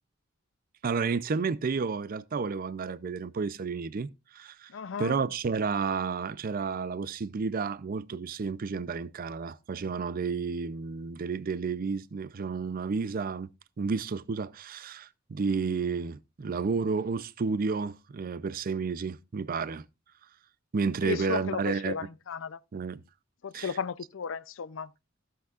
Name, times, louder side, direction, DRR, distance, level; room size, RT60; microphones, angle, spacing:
voice 1, 0.8-4.7 5.0-13.5 13.8-19.8 20.7-22.0 22.7-23.0 23.5-23.8, right 5 dB, 45° right, 0.4 m, -31 dB
voice 2, 4.7-5.1 21.0-22.6 23.4-24.9, left 6 dB, 70° left, 0.5 m, -34 dB
15.0 x 7.9 x 2.4 m
head